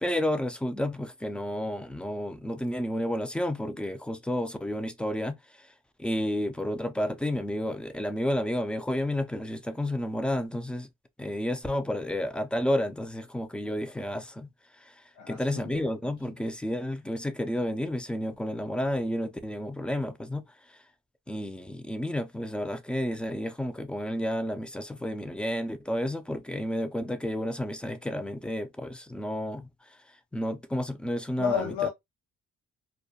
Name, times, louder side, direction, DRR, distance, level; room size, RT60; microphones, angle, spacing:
voice 1, 0.0-5.7 6.0-10.9 11.2-20.8 21.3-30.0 30.3-31.9, left 1 dB, 5° left, 0.3 m, -31 dB
voice 2, 15.1-15.9 16.3-16.4 31.4-31.9, left 10 dB, 75° left, 0.6 m, -31 dB
2.3 x 2.1 x 2.6 m
cardioid pair, 90°, 30 cm